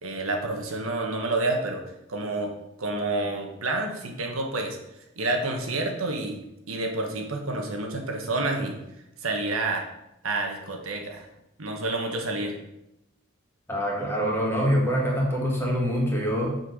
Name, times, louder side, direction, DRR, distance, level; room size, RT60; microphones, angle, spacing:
voice 1, 0.0-1.8 2.1-2.5 2.8-4.8 5.2-6.4 6.7-8.8 9.2-9.9 10.2-11.3 11.6-12.6, right 2 dB, 85° right, 2 dB, 1.3 m, -29 dB
voice 2, 13.7-16.6, equal, 10° left, -3 dB, 2.0 m, -25 dB
6.5 x 4.5 x 6.4 m, 0.86 s
head